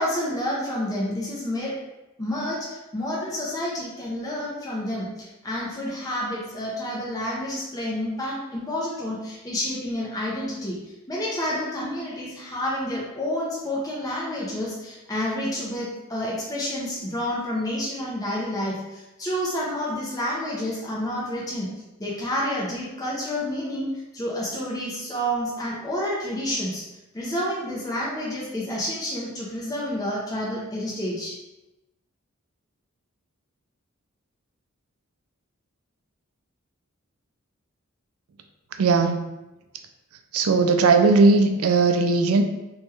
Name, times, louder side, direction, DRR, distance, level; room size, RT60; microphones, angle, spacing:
voice 1, 0.0-1.8 2.2-21.7 22.0-26.8 27.1-31.4, left 1 dB, 15° left, -6 dB, 0.5 m, -29 dB
voice 2, 38.8-39.2 40.3-42.4, right 3 dB, 90° right, 6 dB, 0.4 m, -18 dB
3.0 x 2.3 x 3.1 m, 1.0 s
head